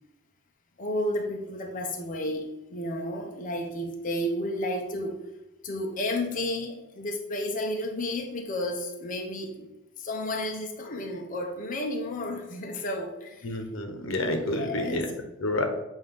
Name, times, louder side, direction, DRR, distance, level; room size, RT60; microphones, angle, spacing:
voice 1, 0.8-5.2 5.6-9.7 10.0-13.6 14.3-15.0, left 1 dB, 40° left, 2 dB, 0.7 m, -32 dB
voice 2, 13.4-15.6, left 1 dB, 80° left, 5 dB, 0.9 m, -29 dB
7.7 x 2.6 x 5.2 m, 0.97 s
head